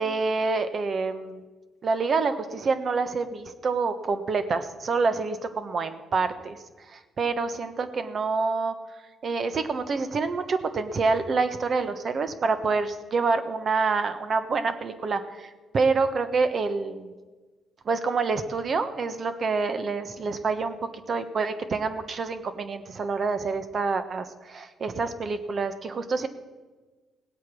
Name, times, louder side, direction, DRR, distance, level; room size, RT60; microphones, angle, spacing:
voice 1, 0.0-1.4 1.8-6.6 6.9-8.7 9.2-17.1 17.8-26.3, right 4 dB, 45° right, 10 dB, 1.1 m, -27 dB
17.5 x 8.2 x 6.3 m, 1.3 s
cardioid pair, 90°, 0 cm